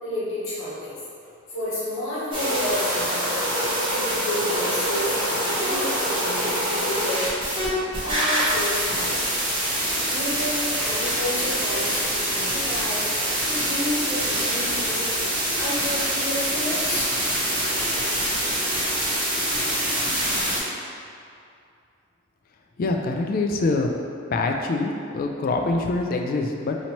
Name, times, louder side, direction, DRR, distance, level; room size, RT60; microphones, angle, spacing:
voice 1, 0.0-1.0 1.5-3.4 3.9-7.2 8.0-9.5 10.0-15.0 15.6-17.1, left 1 dB, 75° left, -9 dB, 1.3 m, -31 dB
sound 1, 2.3-7.7 7.9-20.6, right 1 dB, 25° right, 1.1 m, -25 dB
voice 2, 22.8-23.9 24.3-26.8, left 3 dB, 45° left, 2 dB, 0.3 m, -24 dB
2.9 x 2.8 x 4.4 m, 2.5 s
head